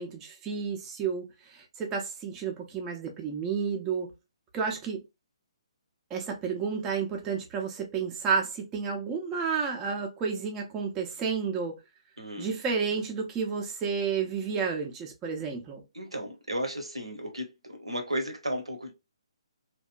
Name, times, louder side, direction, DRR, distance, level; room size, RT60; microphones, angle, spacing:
voice 1, 0.0-4.1 4.5-5.0 6.1-11.8 12.4-15.8, right 5 dB, 15° right, 0.5 m, -31 dB
voice 2, 12.2-12.6 15.9-18.9, equal, 80° right, 0.8 m, -34 dB
2.8 x 2.2 x 2.3 m
figure-of-eight pair, 135°, 3 cm